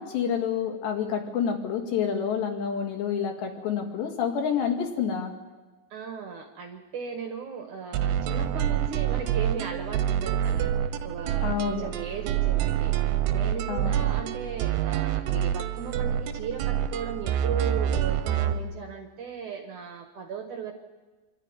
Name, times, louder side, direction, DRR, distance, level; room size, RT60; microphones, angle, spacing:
voice 1, 0.0-5.3 11.4-11.9 13.7-14.1, left 7 dB, 75° left, 3 dB, 4.2 m, -28 dB
voice 2, 5.9-12.9 13.3-20.7, right 6 dB, 60° right, 4 dB, 2.3 m, -36 dB
sound 1, 7.9-18.6, right 10 dB, 75° right, 2.8 m, -27 dB
26.0 x 13.0 x 9.7 m, 1.2 s
omnidirectional pair, 5.0 m